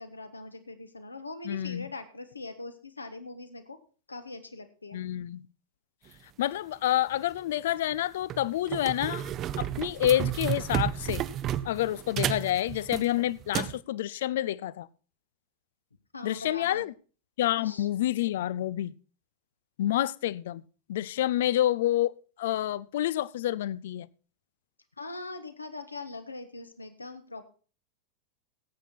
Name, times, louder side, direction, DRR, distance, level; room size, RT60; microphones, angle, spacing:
voice 1, 0.0-3.8 4.1-5.1 16.1-16.9 17.6-17.9 25.0-27.4, left 3 dB, 80° left, 1.4 m, -41 dB
voice 2, 1.4-1.9 4.9-5.4 6.4-9.3 9.6-11.2 11.6-14.9 16.2-16.9 17.4-18.9 19.8-20.6 20.9-22.1 22.4-24.1, left 13 dB, 55° left, 0.5 m, -28 dB
sound 1, 7.1-7.3 7.9-8.0 8.3-13.8, right 11 dB, 30° right, 0.7 m, -32 dB
17.0 x 8.2 x 4.4 m
figure-of-eight pair, 90°, 0 cm